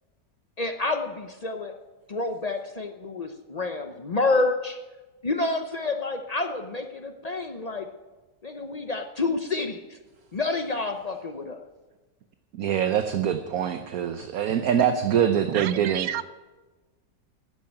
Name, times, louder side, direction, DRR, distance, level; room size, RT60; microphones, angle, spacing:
voice 1, 0.6-1.7 2.1-4.8 5.2-7.9 8.4-10.0 10.3-11.6, left 3 dB, 70° left, 6 dB, 0.3 m, -28 dB
voice 2, 12.5-16.1, right 9 dB, 60° right, 8 dB, 1.1 m, -24 dB
voice 3, 15.5-16.3, right 11 dB, 80° right, 14 dB, 1.4 m, -32 dB
13.0 x 9.5 x 8.9 m, 1.2 s
omnidirectional pair, 1.9 m